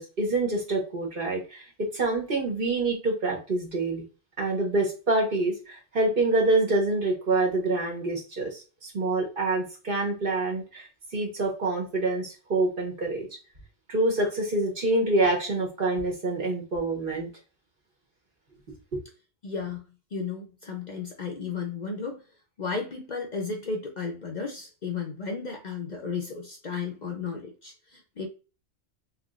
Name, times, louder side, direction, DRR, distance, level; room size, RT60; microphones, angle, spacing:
voice 1, 0.0-4.0 4.4-10.9 11.1-13.3 13.9-17.3 18.9-19.0, right 2 dB, 55° right, 1.4 m, -26 dB
voice 2, 19.4-19.8 20.1-22.2 22.6-28.3, left 5 dB, 50° left, 0.6 m, -34 dB
3.2 x 3.2 x 2.4 m
omnidirectional pair, 1.2 m